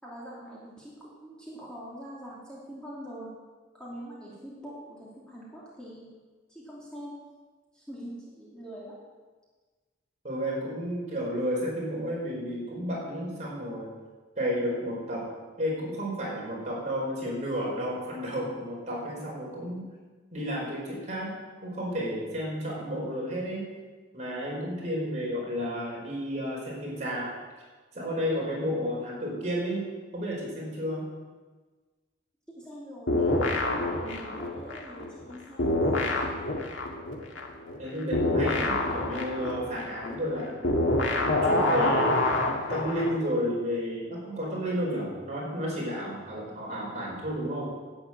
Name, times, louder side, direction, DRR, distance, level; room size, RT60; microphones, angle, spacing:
voice 1, 0.0-3.3 3.7-6.1 6.5-7.2 7.7-8.9 32.5-36.5, equal, 5° left, -7 dB, 2.9 m, -44 dB
voice 2, 10.2-13.9 14.4-15.3 15.6-19.8 20.3-21.4 21.6-23.7 24.1-27.3 27.9-29.9 30.1-31.0 37.8-40.8 41.1-42.2 42.7-47.7, equal, 35° right, -4 dB, 4.8 m, -32 dB
sound 1, 33.1-35.3 35.6-43.2, left 2 dB, 90° left, 2.0 m, -27 dB
11.5 x 8.9 x 8.8 m, 1.4 s
head